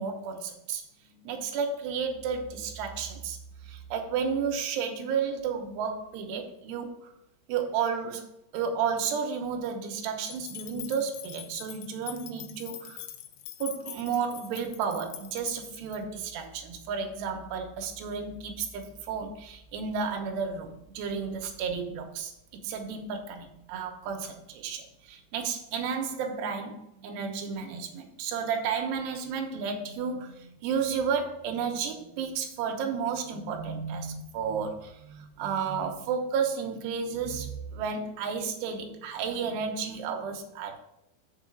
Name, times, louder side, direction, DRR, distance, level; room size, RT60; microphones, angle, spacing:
voice 1, 0.0-3.4 3.6-7.1 7.5-13.0 13.6-40.8, right 6 dB, 75° right, 4 dB, 2.9 m, -32 dB
sound 1, 10.2-16.0, left 13 dB, 85° left, 3.0 m, -44 dB
6.8 x 4.8 x 7.0 m, 0.81 s
omnidirectional pair, 5.2 m